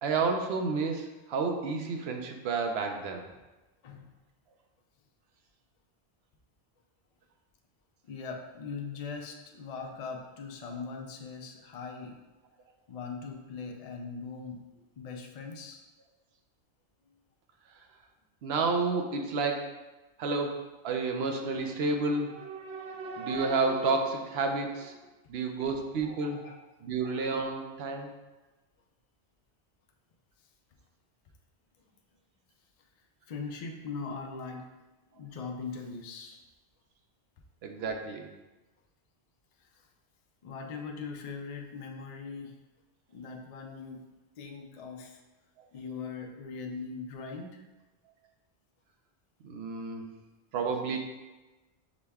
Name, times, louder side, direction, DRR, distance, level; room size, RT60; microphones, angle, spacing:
voice 1, 0.0-3.2 18.4-19.7 20.2-20.6 20.8-25.0 25.3-26.4 26.8-28.1 37.6-38.3 49.4-50.1 50.5-51.0, right 4 dB, 75° right, 3 dB, 0.8 m, -30 dB
voice 2, 8.0-12.2 12.9-14.7 15.0-15.8 22.8-22.9 25.7-25.8 26.4-26.6 33.3-34.7 35.1-36.4 39.6-39.9 40.4-42.6 43.1-44.0 44.4-45.2 45.7-47.6 50.6-50.8, left 5 dB, 55° left, 2 dB, 0.4 m, -40 dB
6.1 x 2.2 x 3.4 m, 1.1 s
omnidirectional pair, 1.1 m